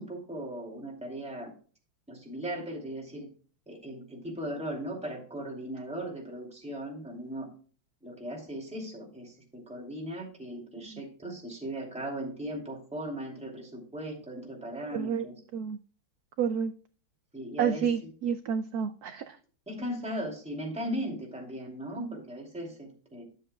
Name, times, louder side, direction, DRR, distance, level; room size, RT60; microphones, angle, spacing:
voice 1, 0.0-1.5 2.1-3.3 3.7-7.5 8.0-15.4 17.3-18.1 19.7-23.2, equal, 5° right, -1 dB, 2.5 m, -38 dB
voice 2, 14.9-15.3 15.5-15.8 16.4-16.7 17.6-19.4 22.0-22.1, right 7 dB, 90° right, 10 dB, 0.8 m, -30 dB
12.5 x 7.7 x 2.3 m, 0.41 s
omnidirectional pair, 2.2 m